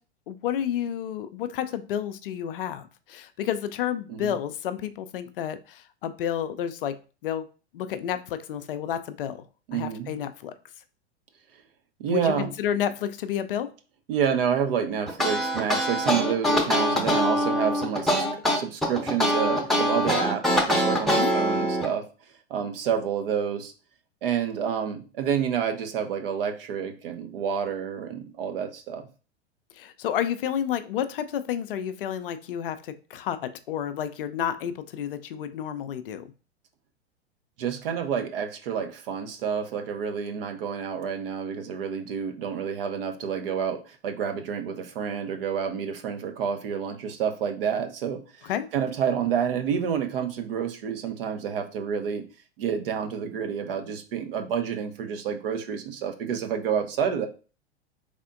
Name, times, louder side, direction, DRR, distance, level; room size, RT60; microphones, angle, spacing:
voice 1, 0.3-2.8 3.1-7.0 7.2-7.5 7.7-9.4 9.7-10.5 12.1-13.7 21.1-21.3 29.8-36.2 48.4-48.7, left 9 dB, 55° left, 11 dB, 0.5 m, -30 dB
voice 2, 9.7-10.1 12.0-12.5 14.1-22.0 22.5-23.7 24.2-29.1 37.6-52.2 52.6-57.3, right 7 dB, 55° right, 6 dB, 0.8 m, -29 dB
sound 1, 15.1-21.9, equal, ahead, 0.8 m, -23 dB
4.1 x 3.5 x 2.5 m, 0.35 s
figure-of-eight pair, 95°, 34 cm